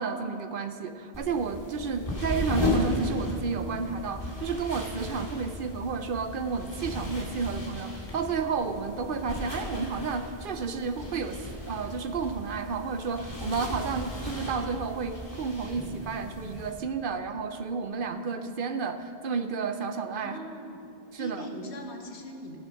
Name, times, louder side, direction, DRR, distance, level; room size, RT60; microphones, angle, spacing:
voice 1, 0.0-20.4 21.1-21.5, right 5 dB, 60° right, 9 dB, 0.8 m, -31 dB
sound 1, 1.1-16.7, left 2 dB, 35° left, 2.4 m, -36 dB
voice 2, 20.2-20.8 21.2-22.6, equal, 90° left, 2 dB, 1.7 m, -40 dB
13.5 x 9.4 x 6.3 m, 2.6 s
omnidirectional pair, 1.1 m